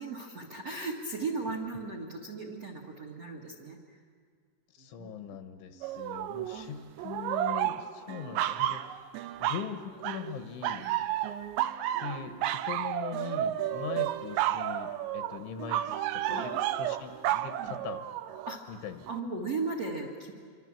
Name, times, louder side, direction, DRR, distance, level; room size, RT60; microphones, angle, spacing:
voice 1, 0.0-4.0 4.8-5.1 5.7-6.0 6.5-6.7 10.8-10.9 16.3-16.7 17.6-17.8 18.4-18.8 19.1-20.3, right 3 dB, 50° right, 2 dB, 1.9 m, -37 dB
voice 2, 4.8-9.0 9.4-10.8 12.0-16.5 16.8-18.0 18.7-19.1, left 7 dB, 75° left, 7 dB, 3.4 m, -41 dB
sound 1, 5.8-6.6 7.0-9.7 10.0-10.4 10.6-18.6 19.1-19.2, right 12 dB, 80° right, 2.8 m, -32 dB
27.0 x 25.0 x 7.5 m, 2.1 s
omnidirectional pair, 5.9 m